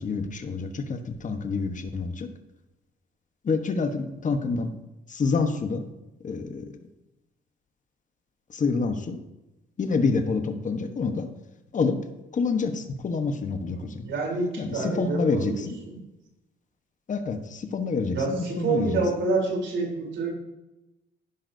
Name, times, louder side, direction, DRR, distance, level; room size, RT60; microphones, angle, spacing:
voice 1, 0.0-2.3 3.4-4.7 5.1-5.8 6.2-6.8 8.5-9.2 9.8-11.3 11.7-12.0 12.3-14.1 14.6-15.7 17.1-19.0, left 4 dB, 40° left, 7 dB, 1.2 m, -27 dB
voice 2, 13.6-15.9 18.1-20.3, right 3 dB, 70° right, -1 dB, 3.6 m, -28 dB
11.0 x 10.0 x 2.7 m, 0.98 s
cardioid pair, 90°, 20 cm